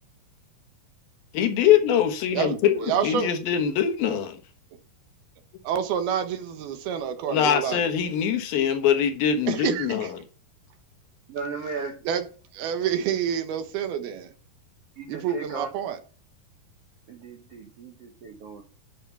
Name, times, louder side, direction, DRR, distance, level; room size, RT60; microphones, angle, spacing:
voice 1, 1.3-4.4 7.3-10.1, left 9 dB, 75° left, 3.0 m, -23 dB
voice 2, 2.8-3.3 5.6-7.8 9.5-10.1 12.1-12.2 12.5-14.3 15.1-16.0, right 8 dB, 85° right, 3.1 m, -28 dB
voice 3, 11.3-12.0 15.0-15.7 17.1-18.6, right 4 dB, 70° right, 1.5 m, -36 dB
10.5 x 6.0 x 5.6 m
omnidirectional pair, 4.4 m